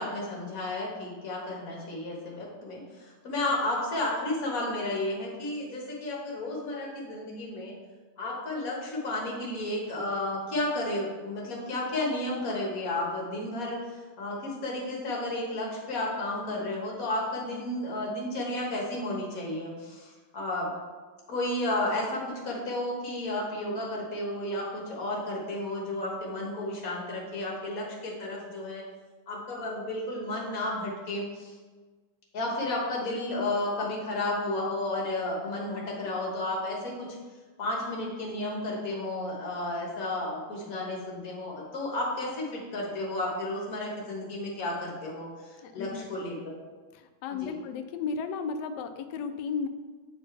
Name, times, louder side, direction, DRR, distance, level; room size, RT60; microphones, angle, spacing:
voice 1, 0.0-7.8 8.2-20.7 21.3-28.8 29.3-31.6 32.3-37.1 37.6-46.5 47.3-47.5, left 1 dB, 45° left, -2 dB, 1.7 m, -32 dB
voice 2, 45.6-46.1 46.9-49.7, left 5 dB, 80° left, 7 dB, 0.9 m, -34 dB
8.5 x 4.3 x 3.3 m, 1.4 s
omnidirectional pair, 2.4 m